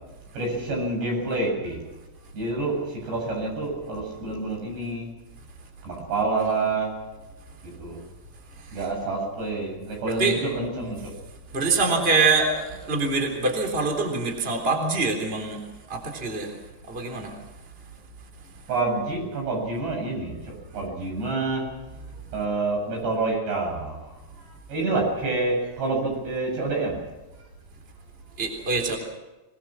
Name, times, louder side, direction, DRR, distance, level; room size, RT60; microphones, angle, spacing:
voice 1, 0.3-1.8 2.3-5.1 5.8-6.9 7.6-8.0 8.7-11.1 18.7-21.6 22.3-24.0 24.4-27.0, right 3 dB, 85° right, 0 dB, 10.0 m, -28 dB
voice 2, 10.1-10.4 11.5-15.6 15.9-16.5 16.9-17.3 28.4-29.0, right 3 dB, 15° right, 2 dB, 3.4 m, -24 dB
26.0 x 21.0 x 6.2 m, 1.1 s
omnidirectional pair, 4.8 m